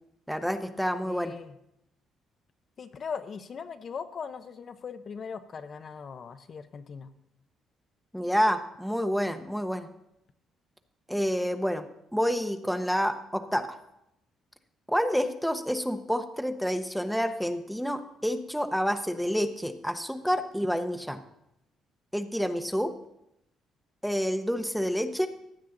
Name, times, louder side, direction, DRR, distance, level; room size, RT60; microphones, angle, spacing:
voice 1, 0.3-1.3 8.1-9.9 11.1-11.8 12.1-13.7 14.9-21.2 22.1-22.9 24.0-25.3, equal, ahead, 8 dB, 0.8 m, -28 dB
voice 2, 1.1-1.5 2.8-7.1, left 6 dB, 45° left, 9 dB, 0.7 m, -39 dB
15.5 x 9.3 x 3.8 m, 0.83 s
cardioid pair, 115°, 0 cm